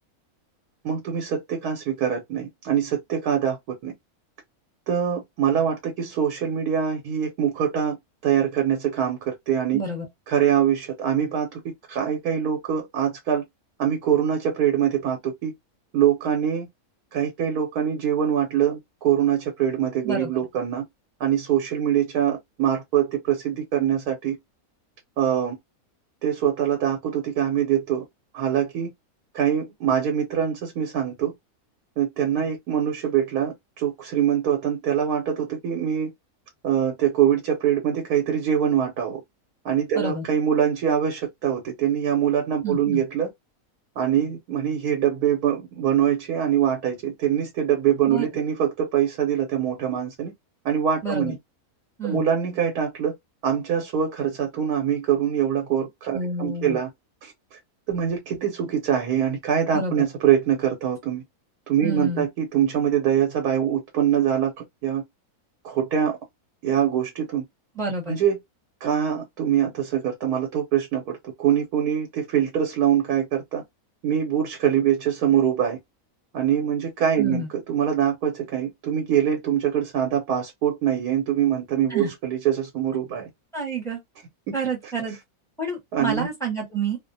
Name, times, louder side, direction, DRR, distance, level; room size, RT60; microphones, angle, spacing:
voice 1, 0.8-3.6 3.8-3.9 4.9-8.0 8.2-9.8 10.3-13.4 13.8-15.5 15.9-16.7 17.1-20.8 21.2-24.4 25.2-25.6 26.2-28.0 28.3-28.9 29.3-31.3 32.0-36.1 36.6-39.2 39.6-43.3 44.0-50.3 50.6-51.4 52.0-53.1 53.4-56.9 57.2-57.6 57.9-61.2 61.7-64.5 64.8-65.0 65.6-66.2 66.6-67.4 68.1-68.4 68.8-73.6 74.0-75.8 76.3-77.4 77.7-83.3 85.9-86.3, right 9 dB, 80° right, 1.3 m, -23 dB
voice 2, 9.7-10.1 20.0-20.3 39.9-40.2 42.6-43.0 48.1-48.3 51.0-51.3 52.0-52.2 56.1-56.8 59.7-60.0 61.8-62.3 67.7-68.2 77.2-77.5 81.9-82.1 83.5-84.0 84.5-85.2 85.6-87.0, right 3 dB, ahead, 0.9 m, -28 dB
2.7 x 2.1 x 2.6 m
omnidirectional pair, 1.6 m